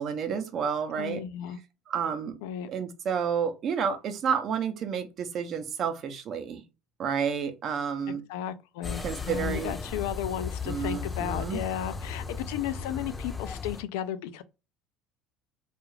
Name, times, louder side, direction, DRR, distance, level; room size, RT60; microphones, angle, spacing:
voice 1, 0.0-1.2 1.9-2.4 2.7-6.6 7.0-8.2 9.0-9.8 10.7-11.6, right 7 dB, 45° right, 0.6 m, -30 dB
voice 2, 1.0-1.6 2.4-2.7 8.1-14.4, left 10 dB, 85° left, 0.3 m, -34 dB
sound 1, 8.8-13.8, left 5 dB, 20° left, 0.6 m, -36 dB
2.4 x 2.3 x 3.1 m
supercardioid pair, 110°, 0 cm